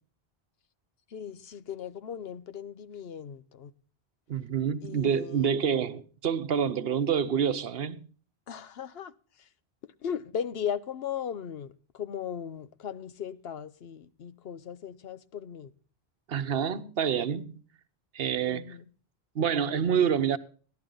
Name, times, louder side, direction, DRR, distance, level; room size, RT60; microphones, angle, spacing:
voice 1, 1.1-3.7 4.8-5.5 8.5-9.1 10.0-15.7 18.5-18.8, left 8 dB, 70° left, 0.9 m, -37 dB
voice 2, 4.3-8.0 16.3-17.5 18.1-18.6 19.3-20.4, right 7 dB, 70° right, 1.0 m, -27 dB
15.5 x 11.5 x 3.8 m
omnidirectional pair, 1.1 m